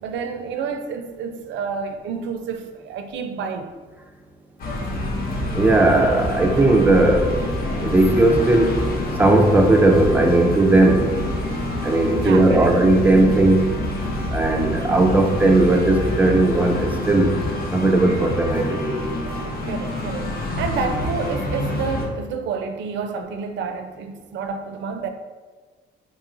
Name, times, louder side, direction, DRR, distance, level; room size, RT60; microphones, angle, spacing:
voice 1, 0.0-3.7 12.2-12.7 19.6-25.1, right 5 dB, 75° right, 7 dB, 0.4 m, -29 dB
sound 1, 4.6-22.1, left 1 dB, 50° left, 0.7 m, -27 dB
voice 2, 5.6-7.3 7.9-8.7 9.2-11.1 11.8-13.6 14.3-16.8 17.1-17.3 17.7-19.0, right 2 dB, 10° right, 3 dB, 0.4 m, -17 dB
4.0 x 2.9 x 2.4 m, 1.4 s
cardioid pair, 120°, 20 cm